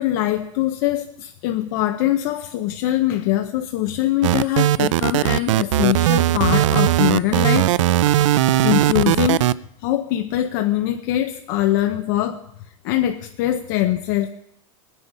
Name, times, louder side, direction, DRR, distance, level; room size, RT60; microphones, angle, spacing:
voice 1, 0.0-7.7 8.6-9.4 9.8-12.4 12.8-14.3, left 13 dB, 40° left, 6 dB, 0.6 m, -22 dB
sound 1, 4.2-9.5, right 14 dB, 70° right, 0.4 m, -18 dB
21.0 x 9.8 x 5.3 m, 0.77 s
supercardioid pair, 170°, 16 cm